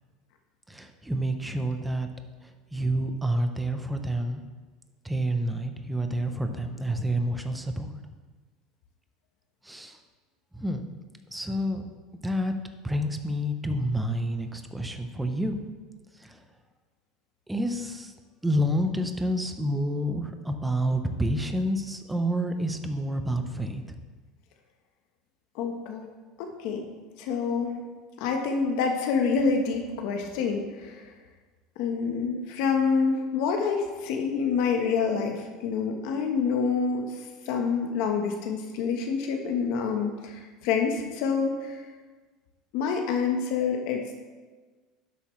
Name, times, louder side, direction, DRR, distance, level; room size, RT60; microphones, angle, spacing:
voice 1, 0.7-2.1 2.4-4.4 5.0-8.0 9.6-10.0 10.5-10.8 11.3-11.9 12.2-12.5 12.8-15.6 16.1-16.4 17.5-18.1 18.4-24.0, equal, 5° right, 6 dB, 0.7 m, -29 dB
voice 2, 25.5-26.0 26.4-26.9 27.2-27.8 28.2-31.1 31.8-37.1 37.5-41.8 42.7-44.0, left 5 dB, 65° left, 3 dB, 1.1 m, -27 dB
11.5 x 8.1 x 3.2 m, 1.4 s
cardioid pair, 155°, 0 cm